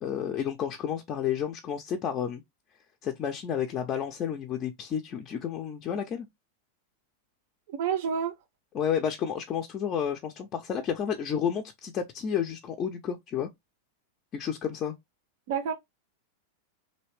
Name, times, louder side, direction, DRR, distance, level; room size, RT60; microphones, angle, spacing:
voice 1, 0.0-2.4 3.0-6.3 8.7-13.5 14.3-15.0, left 8 dB, 30° left, 0.4 m, -31 dB
voice 2, 7.8-8.3 15.5-15.7, right 7 dB, 50° right, 0.4 m, -28 dB
3.1 x 2.7 x 3.1 m
figure-of-eight pair, 90°, 0 cm